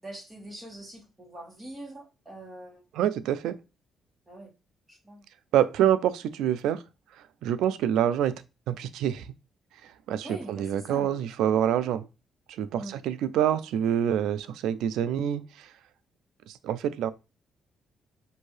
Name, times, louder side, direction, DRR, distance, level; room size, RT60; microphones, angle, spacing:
voice 1, 0.0-2.8 4.3-4.5 4.9-5.2 10.2-11.1 12.8-13.0, right 1 dB, 15° right, 1.8 m, -43 dB
voice 2, 2.9-3.6 5.5-6.8 7.4-8.4 8.7-9.3 10.1-12.1 12.5-15.7 16.5-17.1, right 10 dB, 85° right, 0.3 m, -26 dB
5.2 x 2.6 x 3.2 m
cardioid pair, 90°, 0 cm